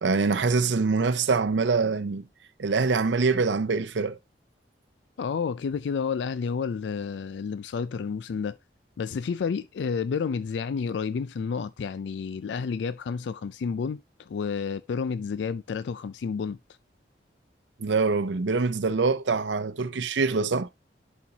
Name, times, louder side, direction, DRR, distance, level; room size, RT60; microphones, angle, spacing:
voice 1, 0.0-2.3 2.6-4.2 17.8-20.7, right 4 dB, 80° right, 0.6 m, -24 dB
voice 2, 5.2-8.6 9.0-16.6, left 5 dB, 75° left, 0.4 m, -30 dB
11.0 x 4.4 x 2.8 m
head